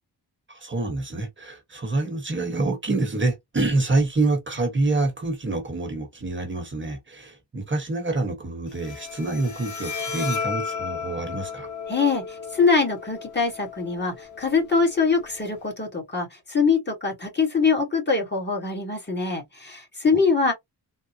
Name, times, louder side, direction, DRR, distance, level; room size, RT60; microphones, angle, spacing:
voice 1, 0.5-11.7 20.1-20.2, right 2 dB, 30° right, 1.1 m, -26 dB
Bowed string instrument, 8.7-15.7, left 6 dB, 50° left, 1.0 m, -35 dB
voice 2, 11.9-20.5, left 4 dB, 25° left, 1.3 m, -23 dB
3.7 x 2.1 x 2.7 m
wide cardioid pair, 140°, 38 cm